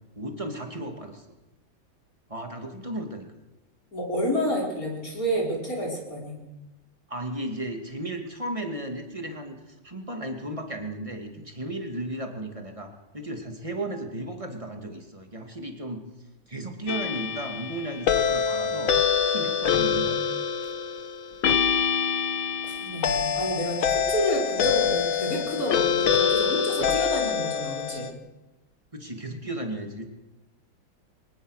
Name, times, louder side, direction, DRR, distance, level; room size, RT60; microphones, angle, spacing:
voice 1, 0.2-1.3 2.3-3.3 7.1-16.0 16.5-18.9 19.2-20.4 28.9-30.1, right 1 dB, 15° right, 4 dB, 2.4 m, -35 dB
voice 2, 3.9-6.4 19.6-20.3 22.6-28.1, equal, 45° left, -2 dB, 5.5 m, -29 dB
sound 1, 16.9-28.1, left 7 dB, 80° left, 2.0 m, -25 dB
23.5 x 20.0 x 6.6 m, 1.0 s
omnidirectional pair, 2.1 m